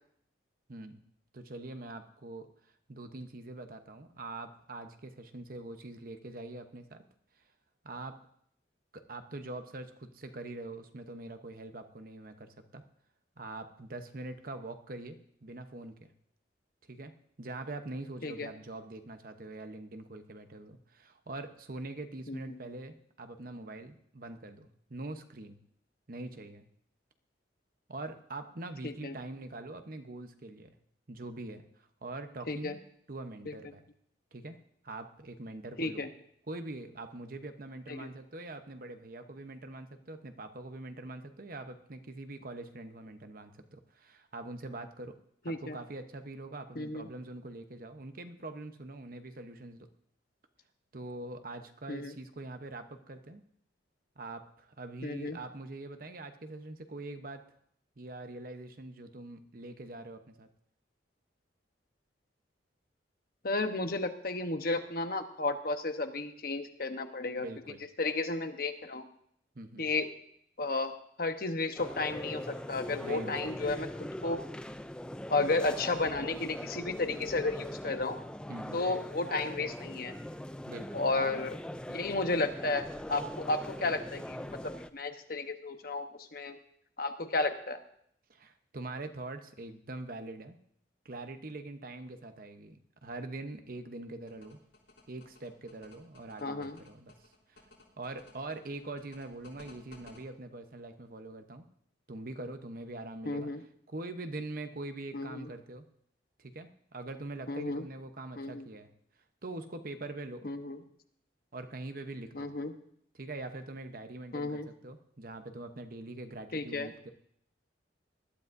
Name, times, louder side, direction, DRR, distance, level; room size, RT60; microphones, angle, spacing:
voice 1, 0.7-1.0 1.3-2.5 2.9-7.0 7.8-8.2 8.9-12.8 13.4-16.1 16.9-17.1 17.4-25.6 26.1-26.7 27.9-30.7 31.1-32.8 33.1-33.8 34.3-34.6 34.8-36.1 36.5-45.2 45.6-49.9 50.9-53.4 54.2-57.4 58.0-60.5 67.2-67.8 69.5-69.9 73.0-73.4 73.7-73.8 78.5-78.8 80.7-81.2 88.3-90.6 91.0-94.6 95.1-97.1 97.5-97.7 98.0-101.7 102.1-103.5 103.9-105.9 106.4-108.9 109.4-110.5 111.5-112.5 113.1-117.1, right 2 dB, 50° right, 8 dB, 0.9 m, -43 dB
voice 2, 22.3-22.6 28.8-29.1 32.5-32.7 33.5-33.6 35.8-36.1 37.9-38.1 45.5-45.8 46.8-47.1 51.9-52.1 55.0-55.4 63.4-67.5 68.0-69.1 69.8-70.1 70.6-70.9 71.2-73.9 74.2-74.4 75.3-78.2 78.7-80.2 80.9-81.6 81.9-86.6 87.0-87.8 96.4-96.8 103.3-103.6 105.1-105.5 107.5-107.8 108.4-108.6 110.4-110.8 112.3-112.7 114.3-114.7 116.5-116.9, left 3 dB, 55° left, 7 dB, 1.0 m, -33 dB
sound 1, 71.8-84.9, left 1 dB, 5° left, 0.4 m, -41 dB
sound 2, 94.3-100.2, left 2 dB, 90° left, 3.8 m, -56 dB
20.0 x 12.0 x 2.7 m, 0.68 s
head